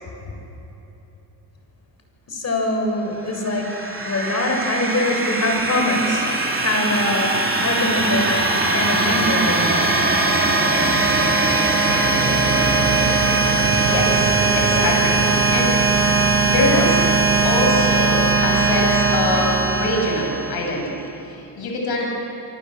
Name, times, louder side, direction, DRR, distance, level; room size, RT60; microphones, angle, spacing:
voice 1, 2.3-3.7 4.0-7.3 7.6-10.1, left 1 dB, 40° left, 2 dB, 7.3 m, -23 dB
sound 1, 3.3-20.9, right 3 dB, 30° right, 4.4 m, -20 dB
voice 2, 13.8-15.2 15.5-15.7 16.4-17.0 17.4-22.1, left 2 dB, 60° left, 0 dB, 7.7 m, -24 dB
28.0 x 25.5 x 8.0 m, 3.0 s
cardioid pair, 105°, 42 cm